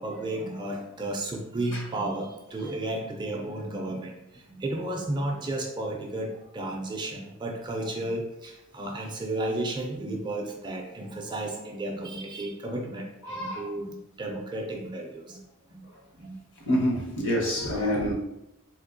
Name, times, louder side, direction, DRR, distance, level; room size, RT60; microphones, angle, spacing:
voice 1, 0.0-15.4 15.7-15.8 16.1-16.8, right 1 dB, 20° right, 1 dB, 0.4 m, -33 dB
voice 2, 13.2-13.7 16.7-18.1, equal, 55° left, -2 dB, 0.9 m, -27 dB
3.5 x 2.7 x 2.6 m, 0.87 s
head